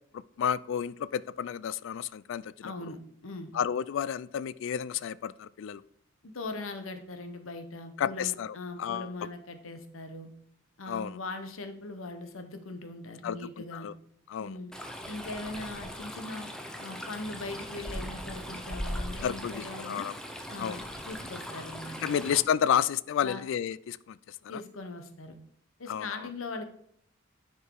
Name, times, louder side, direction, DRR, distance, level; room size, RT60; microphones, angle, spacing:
voice 1, 0.1-2.9 3.5-5.8 8.0-9.1 10.9-11.2 13.2-13.4 13.7-13.9 14.3-14.6 19.2-20.1 20.6-20.8 22.0-24.6 25.9-26.3, left 8 dB, 65° left, 19 dB, 0.3 m, -31 dB
voice 2, 2.6-3.6 6.2-10.3 10.8-13.9 14.4-14.7 15.1-16.5 16.8-20.1 20.5-22.2 23.2-23.4 24.5-25.4 25.8-26.7, left 2 dB, 90° left, 8 dB, 1.0 m, -40 dB
Stream, 14.7-22.4, equal, 5° left, 0.8 m, -39 dB
9.8 x 4.8 x 4.6 m, 0.69 s
head